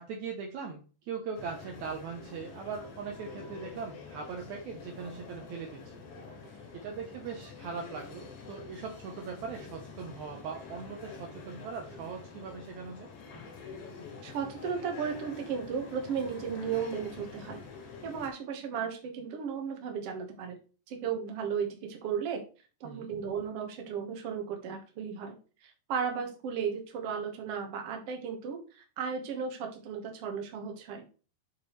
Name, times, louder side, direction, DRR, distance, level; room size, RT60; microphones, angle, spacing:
voice 1, 0.0-5.9 6.4-13.1 22.8-23.1, right 5 dB, 80° right, 2 dB, 1.6 m, -40 dB
sound 1, 1.3-18.3, left 5 dB, 65° left, 3.6 m, -47 dB
voice 2, 6.1-6.5 13.3-13.5 14.2-17.6 18.0-20.6 20.9-22.4 22.8-31.0, right 7 dB, 60° right, 3 dB, 1.5 m, -35 dB
7.2 x 6.0 x 3.1 m, 0.36 s
omnidirectional pair, 4.6 m